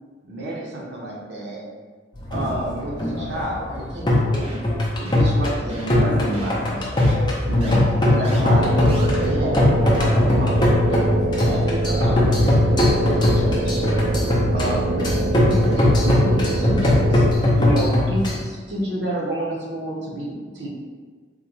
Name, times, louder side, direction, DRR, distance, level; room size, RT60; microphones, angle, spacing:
voice 1, 0.2-1.6 2.3-4.6 4.9-6.9 7.5-10.6 10.9-14.0 14.5-17.3 17.5-20.7, right 1 dB, 60° right, -4 dB, 0.8 m, -29 dB
sound 1, 2.1-18.4, left 1 dB, 25° left, 0.5 m, -20 dB
sound 2, 4.4-4.7 5.1-5.3 5.7-6.0 6.3-6.5 7.0-7.1 7.6-7.8 8.2-8.4 8.9-9.0, right 1 dB, 30° right, 0.6 m, -36 dB
sound 3, 8.5-17.4, right 2 dB, 80° right, 0.3 m, -24 dB
3.6 x 2.2 x 3.0 m, 1.5 s
head